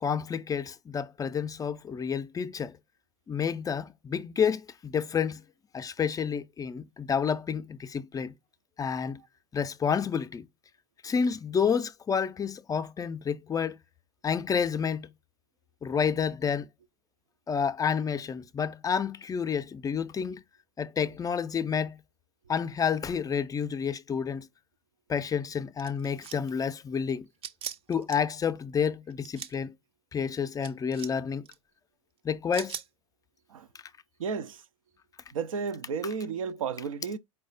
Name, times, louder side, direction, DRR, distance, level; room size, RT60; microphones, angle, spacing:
voice 1, 0.0-2.7 3.3-5.4 5.7-8.3 8.8-9.2 9.5-10.5 11.0-13.8 14.2-15.1 15.8-16.7 17.5-20.4 20.8-22.0 22.5-24.5 25.1-27.3 27.9-29.7 30.1-31.5 32.2-32.8, left 7 dB, 20° left, 0.4 m, -29 dB
sound 1, 25.8-26.5 27.4-28.2 29.1-29.5 30.6-31.1 31.5-31.6 32.5-32.9, right 8 dB, 35° right, 0.5 m, -39 dB
voice 2, 34.2-34.6 35.3-37.2, right 6 dB, 85° right, 0.5 m, -33 dB
4.7 x 2.1 x 3.9 m
hypercardioid pair, 85°, 17 cm